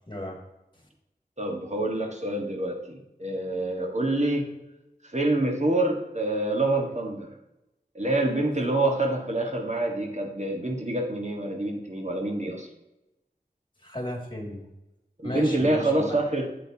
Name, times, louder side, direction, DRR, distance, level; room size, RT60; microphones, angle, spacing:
voice 1, 0.1-0.4 13.8-14.6 15.2-16.2, left 1 dB, 30° left, 0 dB, 2.4 m, -34 dB
voice 2, 1.4-4.5 5.1-7.3 7.9-12.7 15.2-16.5, right 2 dB, 45° right, 2 dB, 1.6 m, -26 dB
8.2 x 7.9 x 2.9 m, 0.96 s
wide cardioid pair, 40°, 17 cm